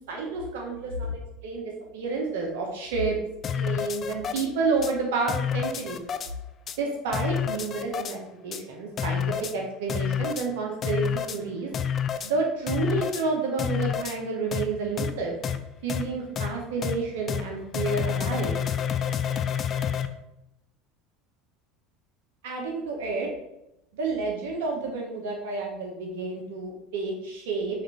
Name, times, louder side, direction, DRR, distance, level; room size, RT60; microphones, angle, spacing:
voice 1, 0.1-3.2 3.5-6.0 6.8-8.2 8.4-9.2 9.5-11.7 12.2-15.3 15.8-18.5 22.4-23.3 24.0-27.8, right 3 dB, 80° right, 0 dB, 0.8 m, -30 dB
sound 1, 3.4-4.5 4.8-4.9 5.3-6.3 6.7-6.8 7.1-8.2 8.5-8.6 9.0-9.5 9.9-10.5 10.8-11.4 11.7-12.3 12.7-13.2 13.6-14.2 14.5-14.6 15.0-15.1 15.4-15.6 15.9-16.0 16.4-16.5 16.8-16.9 17.3-17.4 17.7-20.1, left 8 dB, 40° left, 0.3 m, -28 dB
5.6 x 2.5 x 3.2 m, 0.87 s
supercardioid pair, 95°, 0 cm